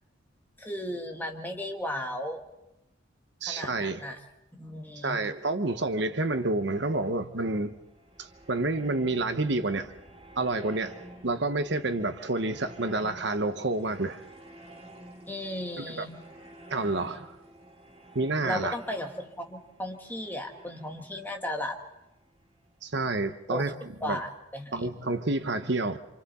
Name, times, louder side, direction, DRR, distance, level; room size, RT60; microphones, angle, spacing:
voice 1, 0.6-2.4 3.4-4.2 4.6-5.2 15.3-16.2 18.4-21.8 23.5-23.7 24.0-24.9, left 1 dB, 10° left, 1.8 m, -35 dB
voice 2, 3.4-4.0 5.0-7.7 8.2-9.9 10.4-11.0 11.2-14.2 15.8-16.1 16.7-17.3 18.1-18.7 22.8-23.7 24.0-24.2 24.7-26.0, right 2 dB, 60° right, 1.0 m, -29 dB
sound 1, 6.3-22.8, right 1 dB, 30° right, 3.2 m, -52 dB
29.0 x 27.0 x 4.2 m
head